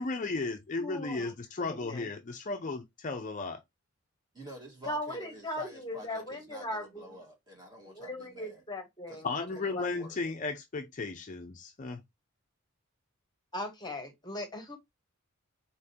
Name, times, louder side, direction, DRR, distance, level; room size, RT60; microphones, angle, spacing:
voice 1, 0.0-3.6 9.2-12.0, left 3 dB, 35° left, 0.5 m, -35 dB
voice 2, 0.8-1.3 1.6-2.1 4.9-7.2 7.9-9.4 9.7-9.9 13.5-14.8, left 1 dB, 20° left, 1.1 m, -38 dB
voice 3, 4.3-8.6 9.1-10.2, equal, 20° right, 1.7 m, -49 dB
4.2 x 3.7 x 2.8 m
head